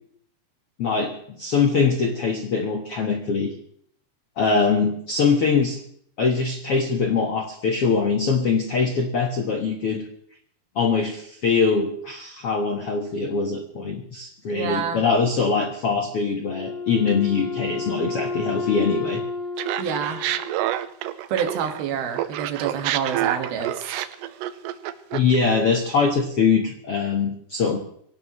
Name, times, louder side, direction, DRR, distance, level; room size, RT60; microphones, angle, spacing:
voice 1, 0.8-3.5 4.4-5.8 6.2-10.0 10.7-19.2 25.1-27.8, left 5 dB, 90° left, 3 dB, 1.3 m, -23 dB
voice 2, 14.5-15.0 19.8-20.2 21.3-23.9, right 7 dB, 65° right, 4 dB, 3.5 m, -27 dB
Wind instrument woodwind instrument, 16.4-20.9, left 4 dB, 70° left, 3.0 m, -31 dB
Laughter, 19.6-21.8 22.1-25.4, right 13 dB, 80° right, 2.8 m, -28 dB
24.0 x 17.5 x 3.1 m, 0.65 s
omnidirectional pair, 4.9 m